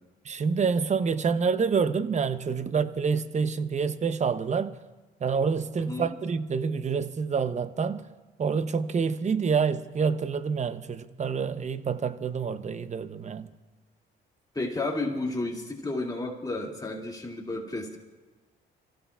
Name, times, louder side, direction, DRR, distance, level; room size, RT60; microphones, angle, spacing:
voice 1, 0.2-4.8 5.2-8.1 8.4-13.5, right 5 dB, 35° right, 0.8 m, -27 dB
voice 2, 5.8-6.1 14.5-18.0, left 2 dB, 20° left, 2.4 m, -32 dB
30.0 x 15.0 x 2.4 m
cardioid pair, 90°, 20 cm